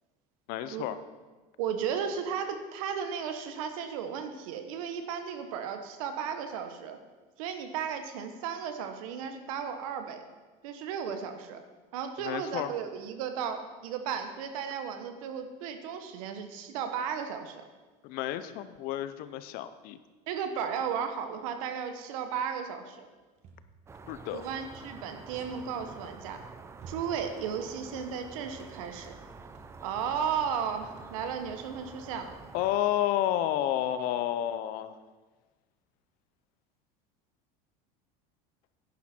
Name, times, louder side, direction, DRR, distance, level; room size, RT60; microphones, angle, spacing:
voice 1, 0.5-1.0 12.2-12.7 18.0-20.0 24.1-24.5 32.5-35.0, left 12 dB, 60° left, 12 dB, 0.7 m, -30 dB
voice 2, 1.6-7.0 7.4-10.2 10.6-11.6 11.9-17.7 20.3-23.1 24.3-26.4 26.9-29.1 29.8-32.3, right 7 dB, 90° right, 7 dB, 1.3 m, -34 dB
sound 1, 23.4-24.7 26.2-27.4 27.7-28.3 28.8-29.1 29.5-29.8 30.2-30.6 30.9-31.2, right 4 dB, 40° right, 1.6 m, -53 dB
sound 2, 23.9-32.8, right 4 dB, 15° right, 0.5 m, -48 dB
10.5 x 10.5 x 4.5 m, 1.3 s
cardioid pair, 145°, 17 cm